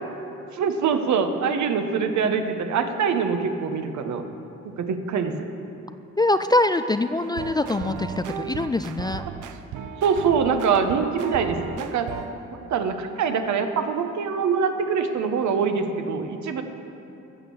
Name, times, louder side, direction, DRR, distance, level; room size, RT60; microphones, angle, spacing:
voice 1, 0.5-4.2 4.6-5.5 10.0-12.2 12.7-16.6, right 6 dB, 70° right, 7 dB, 1.1 m, -24 dB
voice 2, 6.2-9.2, left 2 dB, 15° left, 10 dB, 0.3 m, -23 dB
sound 1, 7.2-12.4, right 8 dB, 85° right, 0.7 m, -35 dB
14.5 x 6.3 x 7.1 m, 3.0 s
cardioid pair, 90°, 30 cm